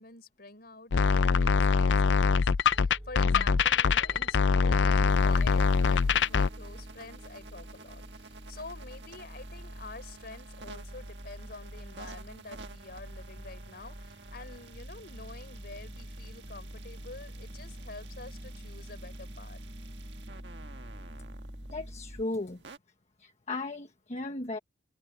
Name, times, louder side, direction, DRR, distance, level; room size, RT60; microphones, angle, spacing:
voice 1, 0.0-19.6, left 3 dB, 60° left, 5.7 m, -47 dB
sound 1, 0.9-6.5, left 5 dB, 85° left, 0.5 m, -23 dB
sound 2, 2.7-22.2, equal, 30° right, 4.5 m, -46 dB
sound 3, 5.0-22.8, right 4 dB, 75° right, 1.6 m, -52 dB
voice 2, 21.7-22.6 23.2-24.6, left 2 dB, 40° left, 1.3 m, -36 dB
head